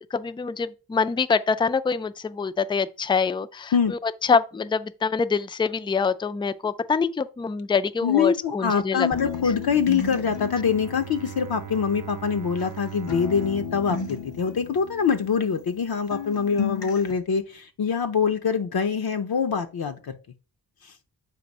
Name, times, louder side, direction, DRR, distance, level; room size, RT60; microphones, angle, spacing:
voice 1, 0.1-9.1, left 5 dB, 15° left, 0.3 m, -25 dB
voice 2, 8.0-20.2, left 6 dB, 60° left, 0.7 m, -24 dB
sound 1, 9.1-12.8 13.1-15.9 16.1-17.1, left 6 dB, 85° left, 1.6 m, -34 dB
Bowed string instrument, 10.2-15.2, right 11 dB, 50° right, 0.5 m, -41 dB
7.5 x 2.6 x 5.3 m
cardioid pair, 65°, 41 cm